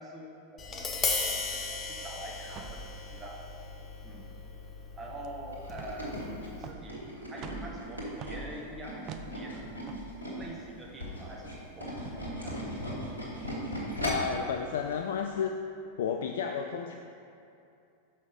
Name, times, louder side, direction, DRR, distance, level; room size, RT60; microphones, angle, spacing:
voice 1, 0.0-3.4 4.0-4.3 4.9-7.0 7.3-9.6 10.3-12.6, right 1 dB, 15° right, -2 dB, 1.0 m, -45 dB
Tap, 0.6-6.7, left 4 dB, 25° left, 0.8 m, -37 dB
sound 1, 2.5-13.7, right 4 dB, 35° right, 0.4 m, -48 dB
Tools, 5.5-10.5 10.9-14.4 14.8-15.0 15.3-15.4, equal, 85° right, 1.7 m, -37 dB
voice 2, 14.0-15.6 16.0-17.0, left 6 dB, 60° left, 4 dB, 0.3 m, -32 dB
6.3 x 5.5 x 4.9 m, 2.6 s
figure-of-eight pair, 90°, 0 cm